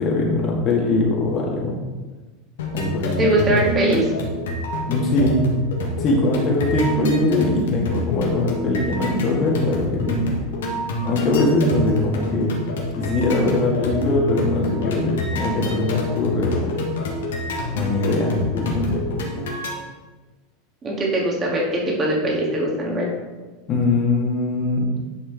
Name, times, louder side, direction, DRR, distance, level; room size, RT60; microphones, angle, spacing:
voice 1, 0.0-1.8 2.7-3.6 4.9-5.5 6.0-10.3 11.0-12.5 13.0-16.8 17.7-19.1 23.7-24.9, left 2 dB, 40° left, -2 dB, 2.0 m, -21 dB
sound 1, 2.6-19.7, left 1 dB, 70° left, 1.5 m, -27 dB
voice 2, 3.2-4.1 20.8-23.1, right 1 dB, 30° right, -2 dB, 2.5 m, -21 dB
10.0 x 5.6 x 3.5 m, 1.2 s
figure-of-eight pair, 80°, 0 cm